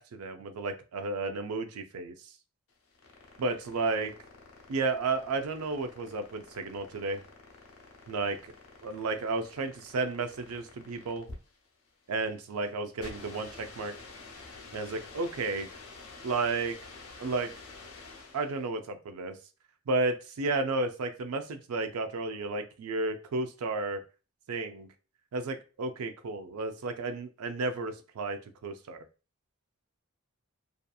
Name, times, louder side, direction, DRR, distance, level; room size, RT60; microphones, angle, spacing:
voice 1, 0.0-2.1 3.4-4.1 4.7-7.2 8.1-8.4 8.8-11.3 12.1-13.9 14.7-15.7 16.2-16.8 17.2-17.5 18.3-19.4 19.9-24.0 24.5-24.9 25.3-29.0, right 3 dB, 70° right, 7 dB, 0.4 m, -32 dB
sound 1, 2.7-18.6, left 3 dB, 65° left, 0.7 m, -49 dB
2.7 x 2.4 x 2.2 m, 0.33 s
head